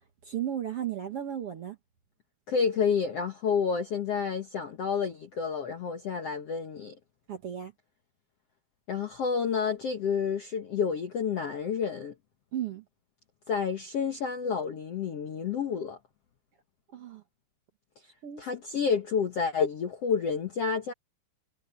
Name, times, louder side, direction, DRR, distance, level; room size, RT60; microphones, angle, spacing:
voice 1, 0.2-1.8 7.3-7.7 12.5-12.8 16.9-17.2 18.2-18.4, right 10 dB, 70° right, 1.4 m, -34 dB
voice 2, 2.5-7.0 8.9-12.1 13.5-16.0 18.4-20.9, left 6 dB, 80° left, 1.3 m, -29 dB
omnidirectional pair, 4.9 m